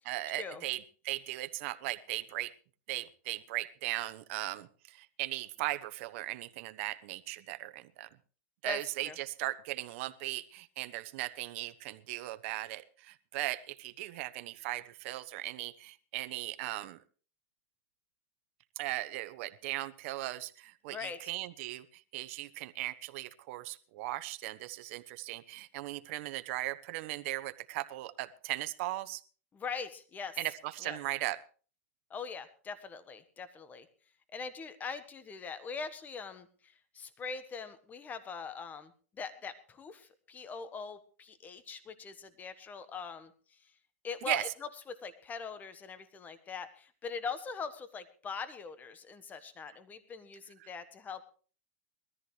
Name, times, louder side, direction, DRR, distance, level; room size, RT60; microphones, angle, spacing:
voice 1, 0.1-2.5 2.9-8.1 8.6-17.0 18.8-21.9 22.1-29.2 30.4-31.4 44.2-44.4 50.6-50.7, right 17 dB, 55° right, 12 dB, 1.0 m, -38 dB
voice 2, 8.6-9.2 20.9-21.2 29.5-30.4 30.8-31.0 32.1-33.9 34.3-38.9 39.2-43.3 44.0-44.5 44.9-51.3, left 5 dB, 20° left, 12 dB, 1.4 m, -42 dB
20.5 x 14.0 x 3.2 m, 0.39 s
supercardioid pair, 135°, 8 cm